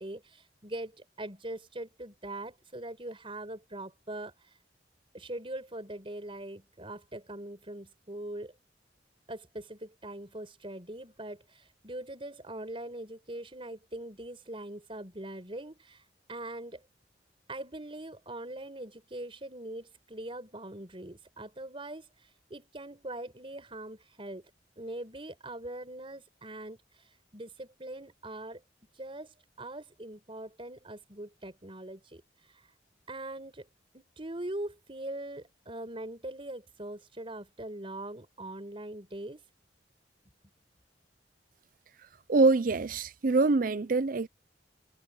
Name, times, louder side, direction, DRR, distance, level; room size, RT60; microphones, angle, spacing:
voice 1, 0.0-4.5 5.1-8.5 9.3-16.8 17.5-24.5 24.8-28.6 28.9-32.7 33.1-33.7 33.9-39.4, right 1 dB, 30° right, 4.8 m, -42 dB
voice 2, 42.3-44.3, right 3 dB, 50° right, 0.5 m, -24 dB
head